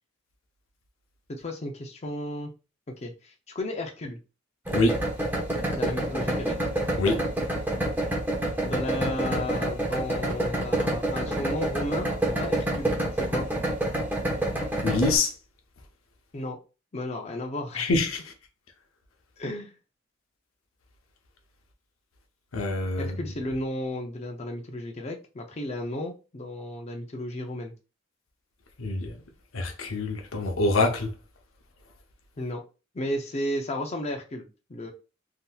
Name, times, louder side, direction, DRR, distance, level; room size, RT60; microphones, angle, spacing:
voice 1, 1.3-2.5 3.0-4.2 5.7-6.6 8.6-12.1 12.4-12.9 13.2-13.5 16.3-16.6 16.9-17.9 19.4-19.8 23.0-27.7 32.4-32.6 32.9-34.9, left 1 dB, 30° left, 0.5 m, -33 dB
sound 1, 4.7-15.2, right 1 dB, 10° right, 0.9 m, -27 dB
voice 2, 14.8-15.3 17.8-18.2 22.5-23.1 28.8-29.1 29.5-31.1, left 2 dB, 80° left, 0.7 m, -25 dB
3.5 x 2.7 x 2.2 m
head